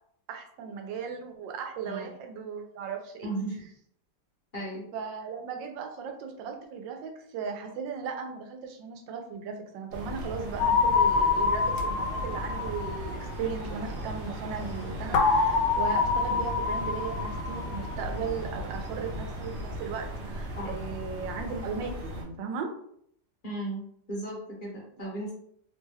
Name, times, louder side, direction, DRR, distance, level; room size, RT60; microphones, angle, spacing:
voice 1, 0.3-3.3 4.9-22.7, right 5 dB, 90° right, 4 dB, 1.3 m, -37 dB
voice 2, 3.2-3.6 4.5-4.8 20.5-20.7 23.4-23.8 24.1-25.3, right 1 dB, 40° left, -5 dB, 1.0 m, -35 dB
sound 1, 9.9-22.2, equal, 55° right, 0.8 m, -37 dB
sound 2, 10.6-13.5 15.1-18.0, left 5 dB, 85° left, 1.2 m, -26 dB
3.2 x 2.1 x 3.3 m, 0.69 s
omnidirectional pair, 1.9 m